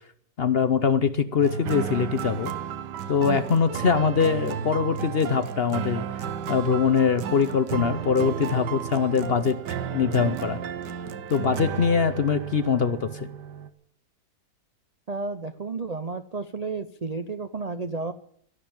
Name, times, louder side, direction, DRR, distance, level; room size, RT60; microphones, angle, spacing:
voice 1, 0.4-2.5 3.1-9.6 9.9-10.6 11.3-13.3, left 6 dB, 50° left, 12 dB, 0.7 m, -23 dB
sound 1, 1.4-13.7, right 8 dB, 85° right, 1.6 m, -33 dB
voice 2, 15.1-18.1, right 4 dB, 60° right, 9 dB, 0.4 m, -32 dB
12.5 x 11.5 x 8.8 m, 0.65 s
omnidirectional pair, 1.8 m